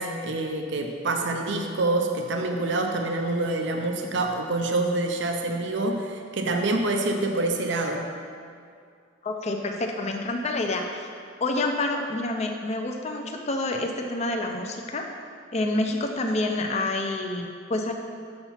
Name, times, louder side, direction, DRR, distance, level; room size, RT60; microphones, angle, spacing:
voice 1, 0.0-8.1, right 2 dB, 60° right, 3 dB, 0.5 m, -26 dB
voice 2, 9.2-11.1 11.4-15.1 15.5-17.9, left 2 dB, 35° left, 3 dB, 0.5 m, -28 dB
6.8 x 4.3 x 5.6 m, 2.3 s
head